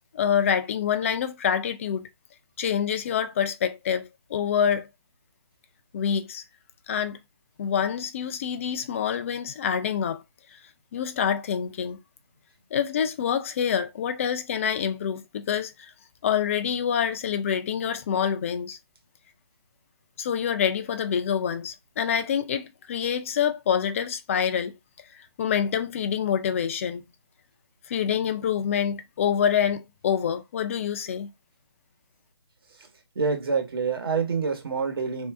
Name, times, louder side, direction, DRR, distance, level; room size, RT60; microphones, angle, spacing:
voice 1, 0.1-2.1 2.6-4.9 5.9-6.4 6.9-7.2 7.6-10.2 10.5-10.6 10.9-12.0 12.7-15.9 16.2-18.8 20.2-24.7 25.4-27.0 27.9-31.3, left 8 dB, 30° left, 0.4 m, -26 dB
voice 2, 33.1-35.3, right 5 dB, 55° right, 1.2 m, -27 dB
3.4 x 2.7 x 3.4 m
figure-of-eight pair, 150°, 14 cm